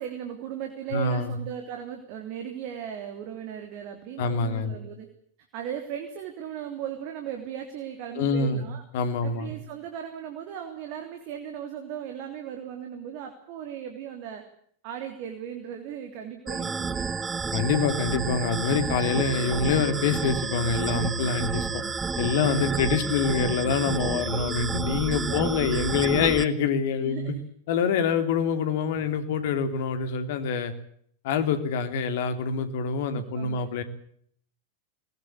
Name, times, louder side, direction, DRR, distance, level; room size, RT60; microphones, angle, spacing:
voice 1, 0.0-5.1 5.5-8.8 9.2-14.4 14.8-17.1 22.3-22.7 25.1-25.5 27.0-27.4 33.1-33.6, right 9 dB, 45° right, 5 dB, 3.3 m, -37 dB
voice 2, 0.9-1.4 4.2-4.7 8.2-8.7 8.9-9.5 17.5-21.8 22.2-27.3 27.7-30.7 31.2-33.8, left 5 dB, 50° left, 9 dB, 3.1 m, -25 dB
sound 1, 16.5-26.4, right 5 dB, 15° right, 1.2 m, -30 dB
20.5 x 20.0 x 8.5 m, 0.64 s
figure-of-eight pair, 90°, 0 cm